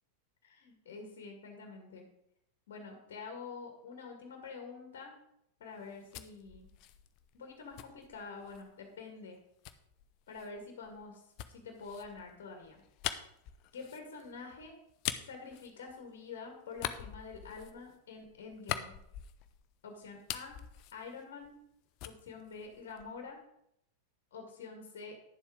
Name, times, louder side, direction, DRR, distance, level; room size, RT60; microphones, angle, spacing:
voice 1, 0.4-2.0 2.7-5.1 5.6-6.7 7.3-9.4 10.3-11.2 11.5-12.8 13.7-14.8 15.3-19.0 19.8-20.6 20.9-21.6 22.0-23.4 24.3-25.2, left 4 dB, 60° left, 3 dB, 2.0 m, -47 dB
sound 1, 5.7-8.7 9.6-16.3 16.7-19.7 20.0-21.7 22.0-23.3, left 12 dB, 40° left, 0.7 m, -44 dB
10.5 x 7.3 x 5.1 m, 0.76 s
figure-of-eight pair, 90°, 0 cm